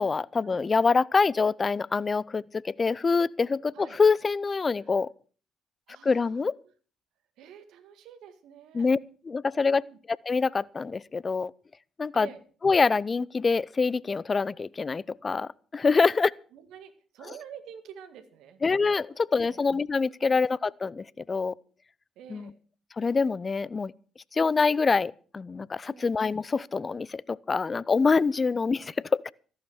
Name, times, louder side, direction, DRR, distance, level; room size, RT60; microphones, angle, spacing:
voice 1, 0.0-5.1 6.0-6.6 8.7-9.0 9.3-9.8 10.3-11.5 12.0-12.3 12.6-16.3 18.6-21.5 22.3-22.5 23.0-23.9 24.3-29.3, left 4 dB, 35° left, 0.6 m, -25 dB
voice 2, 5.9-6.5 7.4-8.9 9.6-10.0 12.1-12.4 16.0-16.1 16.5-18.6 19.1-19.6 20.2-20.4 22.2-22.6 25.9-26.1, right 9 dB, 70° right, 1.9 m, -48 dB
14.0 x 12.0 x 6.2 m
hypercardioid pair, 50°, 0 cm